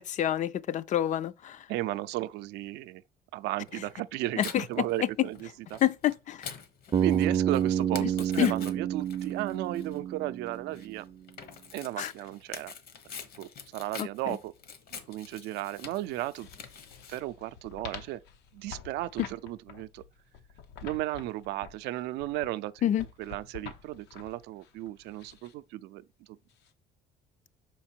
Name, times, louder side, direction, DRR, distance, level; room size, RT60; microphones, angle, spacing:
voice 1, 0.0-1.6 4.4-4.8 5.8-6.5 8.0-8.1 8.4-8.5 12.0-12.1 14.0-14.1 22.8-23.0, left 11 dB, 45° left, 0.4 m, -28 dB
voice 2, 1.7-3.0 3.3-4.4 4.7-5.8 7.0-11.1 11.7-12.7 13.4-14.5 14.9-16.5 17.1-18.2 18.5-20.0 20.8-22.9 23.2-26.0, right 16 dB, 85° right, 0.4 m, -35 dB
Tearing, 3.7-17.2, left 6 dB, 65° left, 1.2 m, -46 dB
Bass guitar, 6.9-11.0, right 9 dB, 30° right, 0.5 m, -29 dB
sound 1, 16.2-25.5 26.5-26.7, left 7 dB, 90° left, 0.8 m, -48 dB
5.7 x 4.5 x 4.4 m
cardioid pair, 110°, 17 cm